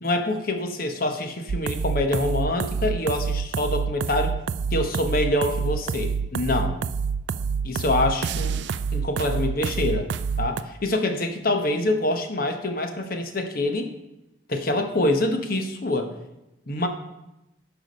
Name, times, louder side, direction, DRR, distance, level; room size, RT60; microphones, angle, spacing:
voice 1, 0.0-4.3 4.7-6.8 7.6-8.6 8.9-10.1 10.4-13.9 14.5-16.1 16.7-16.9, left 1 dB, 45° left, 6 dB, 1.0 m, -25 dB
sound 1, 1.5-10.6, right 5 dB, 60° right, 0.3 m, -27 dB
12.0 x 4.8 x 5.3 m, 0.93 s
head